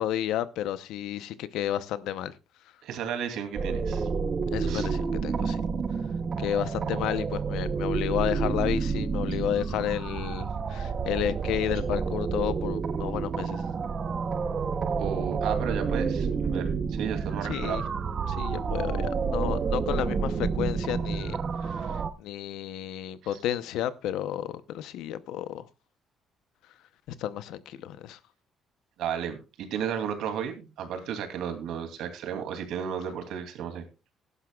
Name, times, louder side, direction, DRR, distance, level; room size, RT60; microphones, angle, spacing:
voice 1, 0.0-2.3 4.5-5.6 6.4-13.6 17.5-17.8 18.3-21.4 21.6-25.6 27.2-28.2, left 11 dB, 80° left, 0.8 m, -32 dB
voice 2, 2.8-4.1 4.7-4.9 15.0-16.7 17.0-17.8 23.2-23.4 29.0-33.8, right 8 dB, 70° right, 2.7 m, -33 dB
sound 1, 3.5-22.1, right 5 dB, 30° right, 0.8 m, -29 dB
18.0 x 11.0 x 2.4 m
cardioid pair, 180°, 0 cm